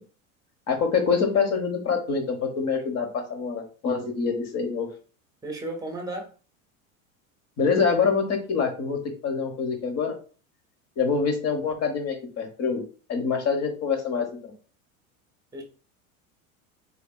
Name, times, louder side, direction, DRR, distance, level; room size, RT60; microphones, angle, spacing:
voice 1, 0.7-4.9 7.6-10.1 11.0-12.8 13.1-14.5, left 5 dB, 35° left, 4 dB, 1.0 m, -25 dB
voice 2, 5.4-6.3 15.5-15.6, right 2 dB, 10° right, 3 dB, 0.9 m, -33 dB
3.7 x 2.6 x 2.2 m, 0.38 s
hypercardioid pair, 95°, 43 cm